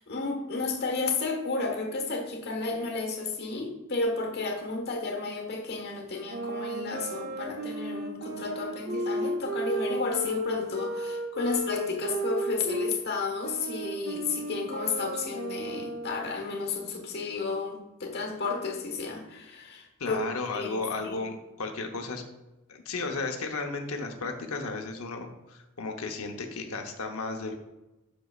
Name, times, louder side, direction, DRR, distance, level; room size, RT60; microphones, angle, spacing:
voice 1, 0.0-20.2 20.5-21.2, left 3 dB, 50° left, 3 dB, 1.3 m, -32 dB
sound 1, 6.3-13.0 13.4-16.4, right 1 dB, 45° right, 0.8 m, -34 dB
voice 2, 20.0-22.2 22.7-27.6, left 3 dB, 75° left, 4 dB, 0.8 m, -34 dB
8.0 x 6.3 x 2.4 m, 0.98 s
head